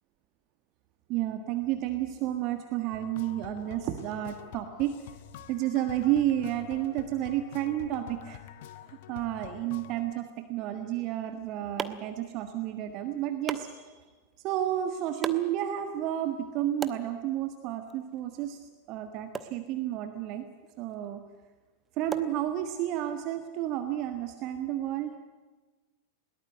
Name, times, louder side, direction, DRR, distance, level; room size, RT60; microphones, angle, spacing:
voice 1, 1.1-4.9 5.5-8.4 8.9-14.1 14.4-18.6 18.9-20.4 20.8-21.2 22.0-25.2, right 12 dB, 40° right, 7 dB, 1.5 m, -31 dB
sound 1, 2.9-10.1, left 11 dB, 50° left, 1.0 m, -47 dB
sound 2, 11.1-23.0, right 5 dB, 20° right, 1.2 m, -44 dB
21.5 x 18.5 x 9.4 m, 1.3 s
figure-of-eight pair, 90°, 0 cm